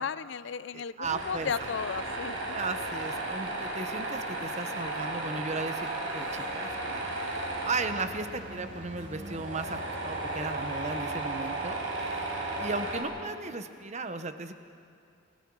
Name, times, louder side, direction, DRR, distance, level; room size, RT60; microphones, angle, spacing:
voice 1, 0.0-2.4, left 6 dB, 65° left, 17 dB, 0.5 m, -34 dB
voice 2, 0.7-1.5 2.5-14.5, right 3 dB, 35° right, 9 dB, 1.0 m, -36 dB
Tools, 1.0-13.0, right 2 dB, 85° right, 4.9 m, -35 dB
29.0 x 19.5 x 4.8 m, 2.4 s
head